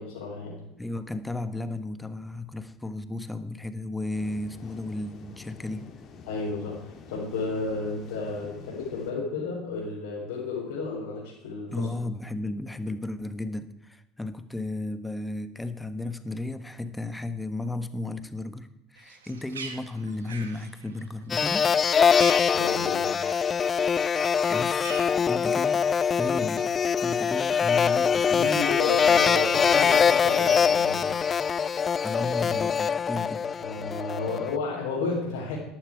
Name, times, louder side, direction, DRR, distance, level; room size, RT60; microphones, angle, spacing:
voice 1, 0.0-0.6 6.3-11.9 22.5-23.2 28.3-31.1 33.6-35.6, left 4 dB, 75° left, -5 dB, 4.6 m, -32 dB
voice 2, 0.8-5.9 11.7-21.7 24.5-25.9 26.2-26.7 27.0-28.6 32.0-33.5, left 2 dB, 10° left, 11 dB, 1.4 m, -34 dB
sound 1, 4.1-9.1, left 5 dB, 50° left, 2.4 m, -47 dB
Bird, 19.0-23.6 23.9-25.8, right 5 dB, 90° right, 1.5 m, -43 dB
sound 2, 21.3-34.5, left 6 dB, 35° left, 0.3 m, -23 dB
14.0 x 11.5 x 4.8 m, 0.86 s
hypercardioid pair, 70°, 0 cm